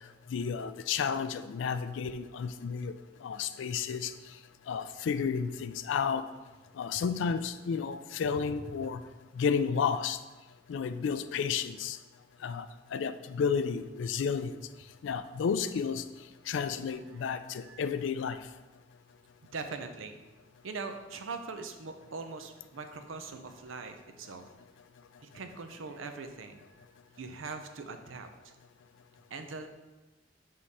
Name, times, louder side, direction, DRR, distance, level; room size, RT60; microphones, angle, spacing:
voice 1, 0.3-2.9 3.2-4.1 4.7-6.3 6.8-9.0 9.4-10.2 10.7-12.0 12.4-12.7 12.9-14.6 15.0-16.0 16.5-18.4, left 6 dB, 70° left, 11 dB, 0.3 m, -31 dB
voice 2, 8.5-9.0 16.9-17.8 19.5-20.2 20.6-24.5 25.2-26.9 27.2-28.6 29.3-29.7, right 4 dB, 90° right, 7 dB, 0.6 m, -42 dB
6.4 x 3.7 x 4.1 m, 1.1 s
head